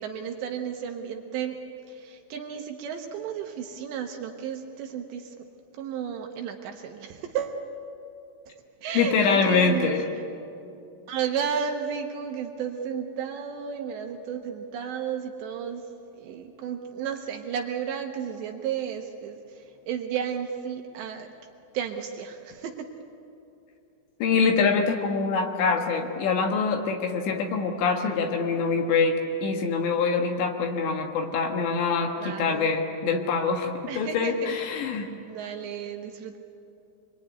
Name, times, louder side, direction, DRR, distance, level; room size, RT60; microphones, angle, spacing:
voice 1, 0.0-1.6 1.9-5.5 5.7-7.6 8.5-8.6 8.8-9.9 11.1-15.8 16.1-21.3 21.7-22.9 32.2-32.7 33.9-34.9 35.3-36.3, right 7 dB, 70° right, 3 dB, 3.0 m, -33 dB
voice 2, 8.9-10.0 24.2-35.1, left 5 dB, 65° left, 3 dB, 3.4 m, -24 dB
25.5 x 22.5 x 9.8 m, 2.7 s
omnidirectional pair, 5.9 m